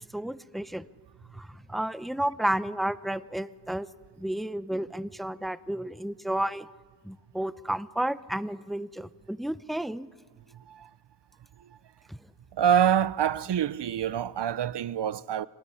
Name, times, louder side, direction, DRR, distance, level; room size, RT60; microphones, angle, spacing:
voice 1, 0.1-0.9 1.3-3.9 4.2-6.7 7.0-10.1 12.1-12.2, right 1 dB, ahead, 0.7 m, -32 dB
voice 2, 12.6-15.5, right 9 dB, 70° right, 0.6 m, -26 dB
24.5 x 19.5 x 9.8 m
cardioid pair, 55°, 43 cm